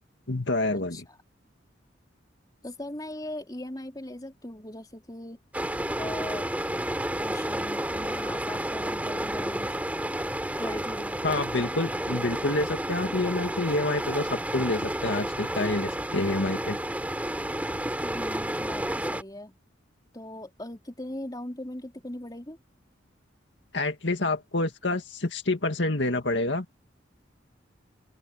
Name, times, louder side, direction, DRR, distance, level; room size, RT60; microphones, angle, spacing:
voice 1, 0.3-1.1 11.2-16.8 23.7-26.7, left 2 dB, 70° left, 2.2 m, -28 dB
voice 2, 2.6-5.4 6.0-6.5 7.2-9.7 10.6-11.4 18.0-19.6 20.1-22.6, left 1 dB, 20° left, 3.6 m, -39 dB
sound 1, 5.5-19.2, right 1 dB, 10° right, 4.3 m, -31 dB
open air
head